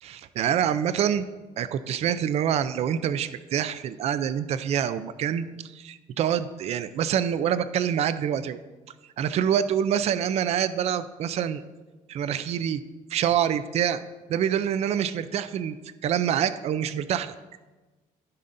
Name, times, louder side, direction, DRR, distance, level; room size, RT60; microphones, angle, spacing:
voice 1, 0.0-1.2 1.6-5.5 5.7-8.6 9.2-11.6 12.1-12.8 13.1-14.0 14.3-15.8 16.0-17.3, right 9 dB, 45° right, 13 dB, 0.4 m, -26 dB
14.5 x 5.5 x 2.6 m, 1.2 s
cardioid pair, 150°, 15 cm